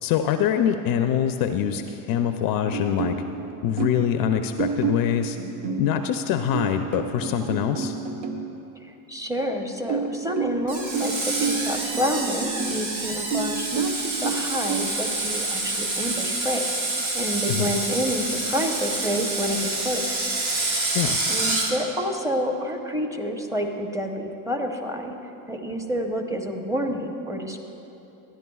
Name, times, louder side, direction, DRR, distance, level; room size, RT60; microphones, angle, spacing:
voice 1, 0.0-3.2 3.6-5.4 5.8-7.9 17.6-17.7 20.9-21.2, left 9 dB, 45° left, 7 dB, 0.5 m, -24 dB
sound 1, 2.7-4.1 4.6-8.4 9.9-12.8 13.3-14.9, right 5 dB, 60° right, 1.0 m, -29 dB
voice 2, 8.8-16.6 17.1-20.3 21.3-25.1 25.5-27.6, equal, 5° right, 3 dB, 0.7 m, -28 dB
Screech, 10.7-21.7, right 2 dB, 80° right, 1.7 m, -27 dB
13.5 x 10.5 x 2.3 m, 3.0 s
hypercardioid pair, 90°, 49 cm